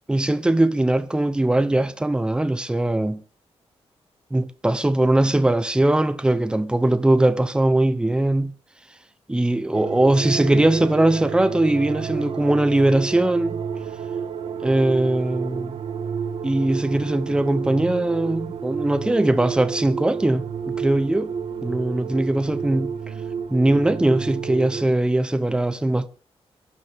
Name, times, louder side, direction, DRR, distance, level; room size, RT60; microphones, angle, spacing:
voice 1, 0.1-3.2 4.3-8.5 9.3-13.6 14.6-15.8 16.4-21.3 21.6-22.9 23.5-26.1, right 1 dB, 10° right, 0.8 m, -20 dB
sound 1, 9.7-24.8, right 7 dB, 65° right, 1.4 m, -30 dB
23.0 x 11.0 x 3.6 m
wide cardioid pair, 155°, 11 cm